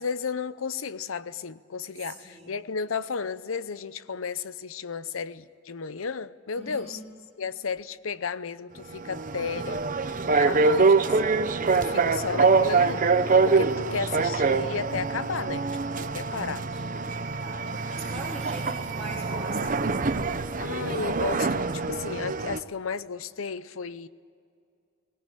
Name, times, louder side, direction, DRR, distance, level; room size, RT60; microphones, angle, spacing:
voice 1, 0.0-7.0 7.4-9.8 10.4-15.7 15.9-16.6 20.6-24.1, left 5 dB, 85° left, 16 dB, 0.7 m, -33 dB
voice 2, 2.0-2.6 6.5-7.0 10.3-11.0 11.6-12.4 13.8-13.9 16.0-16.9 17.1-19.9, right 1 dB, 5° left, -7 dB, 3.9 m, -43 dB
sound 1, 8.8-22.6, right 4 dB, 40° right, 0.8 m, -25 dB
20.0 x 17.5 x 9.9 m, 2.4 s
head